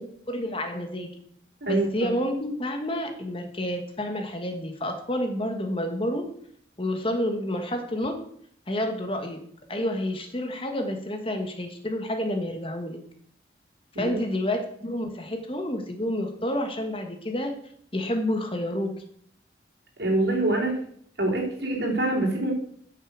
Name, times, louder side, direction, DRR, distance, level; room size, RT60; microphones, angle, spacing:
voice 1, 0.3-1.1 1.7-6.3 6.8-8.2 8.7-9.4 9.7-13.0 14.0-17.5 17.9-18.9, left 1 dB, 30° left, 5 dB, 1.4 m, -29 dB
voice 2, 20.0-20.8 21.2-22.5, right 2 dB, 70° right, -2 dB, 3.6 m, -25 dB
9.4 x 6.7 x 6.4 m, 0.63 s
head